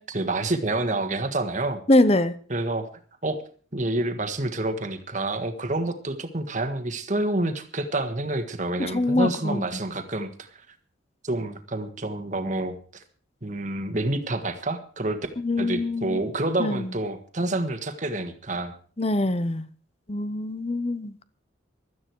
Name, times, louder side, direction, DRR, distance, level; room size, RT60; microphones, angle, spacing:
voice 1, 0.1-1.8 2.5-2.9 3.2-3.4 3.7-10.5 11.2-13.0 13.4-15.2 15.6-18.7, right 2 dB, 40° right, 1.6 m, -28 dB
voice 2, 1.9-2.3 8.8-9.6 15.4-16.2 16.6-16.9 19.0-19.7 20.1-21.2, left 2 dB, 30° left, 0.8 m, -23 dB
16.5 x 12.5 x 4.7 m
head